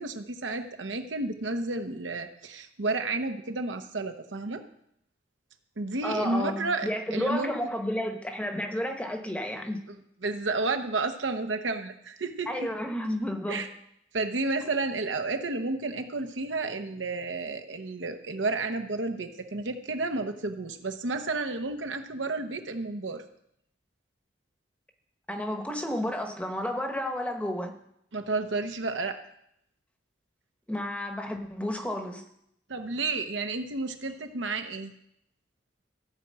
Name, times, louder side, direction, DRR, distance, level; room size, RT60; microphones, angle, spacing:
voice 1, 0.0-4.6 5.8-7.5 9.9-10.0 10.2-12.7 13.5-13.7 14.1-23.2 28.1-29.2 32.7-34.9, right 3 dB, 90° right, 6 dB, 1.0 m, -31 dB
voice 2, 6.0-9.8 12.5-13.7 25.3-27.7 30.7-32.2, left 1 dB, 5° left, 5 dB, 0.9 m, -31 dB
14.5 x 4.8 x 7.5 m, 0.76 s
head